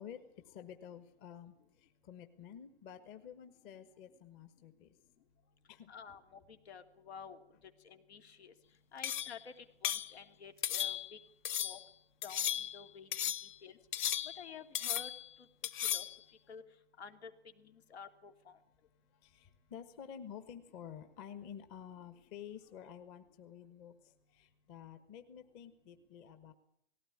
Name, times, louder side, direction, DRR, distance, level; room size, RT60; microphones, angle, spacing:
voice 1, 0.0-4.9 5.4-5.9 19.1-26.5, left 8 dB, 30° left, 8 dB, 1.6 m, -51 dB
voice 2, 5.9-7.4 7.8-8.5 8.9-11.2 11.6-11.8 12.2-13.1 13.6-13.8 14.4-15.1 15.8-16.1 16.5-16.6 17.0-17.3 17.6-18.6, left 6 dB, 75° left, 7 dB, 2.9 m, -51 dB
sound 1, 9.0-9.4 9.8-10.1 10.6-11.2 11.5-11.8 12.2-12.8 13.1-13.6 13.9-14.5 14.8-15.3 15.6-16.2, left 11 dB, 45° left, 1.1 m, -36 dB
19.0 x 17.0 x 9.9 m, 0.70 s
hypercardioid pair, 150°, 33 cm